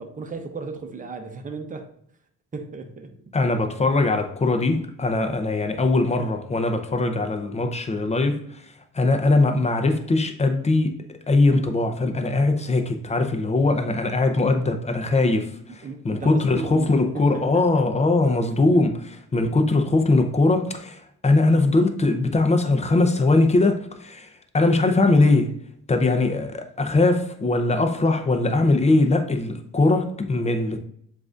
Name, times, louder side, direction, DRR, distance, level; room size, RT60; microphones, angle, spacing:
voice 1, 0.0-1.9 2.5-3.1 15.7-17.9 18.2-18.6, right 4 dB, 25° right, 0.7 m, -35 dB
voice 2, 3.3-8.7 8.9-24.3 24.5-25.6 25.9-30.8, left 2 dB, 20° left, 0.6 m, -21 dB
7.3 x 2.6 x 2.4 m
cardioid pair, 90°, 30 cm